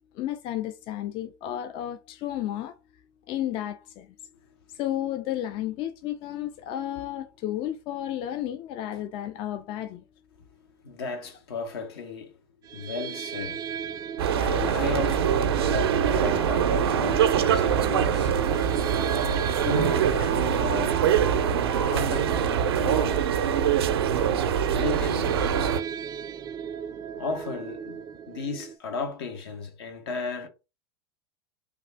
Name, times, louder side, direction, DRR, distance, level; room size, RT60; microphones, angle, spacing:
voice 1, 0.1-2.8 3.3-4.2 4.7-10.0, left 12 dB, 45° left, 0.4 m, -32 dB
voice 2, 10.5-14.1 14.4-18.4 19.2-21.0 21.8-23.3 24.7-25.5 27.2-30.5, left 5 dB, 80° left, 1.0 m, -35 dB
sound 1, 12.6-28.8, right 7 dB, 30° right, 0.4 m, -36 dB
sound 2, 14.2-25.8, right 8 dB, 85° right, 0.5 m, -24 dB
3.4 x 2.4 x 3.4 m
hypercardioid pair, 105°, 13 cm